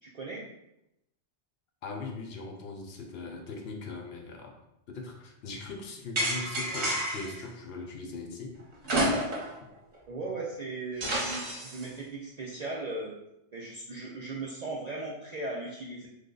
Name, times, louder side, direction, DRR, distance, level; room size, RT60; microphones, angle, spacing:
voice 1, 0.0-0.4 10.1-13.2 13.5-16.1, right 2 dB, 60° right, -4 dB, 0.4 m, -37 dB
voice 2, 1.8-4.5 4.9-8.6, left 3 dB, 65° left, 2 dB, 0.8 m, -40 dB
sound 1, 6.2-7.4 8.8-9.6 9.9-10.0 11.0-11.9, right 1 dB, 40° right, 0.8 m, -29 dB
3.3 x 2.1 x 3.7 m, 0.86 s
omnidirectional pair, 1.2 m